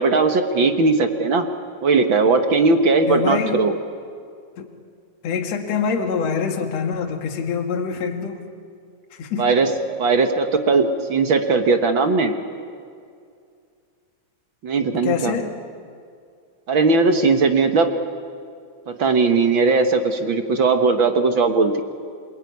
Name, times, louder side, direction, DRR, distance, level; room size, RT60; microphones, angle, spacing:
voice 1, 0.0-1.5 1.8-3.7 9.4-9.7 10.0-12.3 14.6-15.3 16.7-17.9 18.9-21.8, right 4 dB, 50° right, 6 dB, 1.7 m, -18 dB
voice 2, 3.1-3.6 4.6-4.7 5.2-8.4 9.2-9.5 15.0-15.5, left 6 dB, 60° left, 3 dB, 2.9 m, -25 dB
27.0 x 23.0 x 9.6 m, 2.3 s
omnidirectional pair, 3.5 m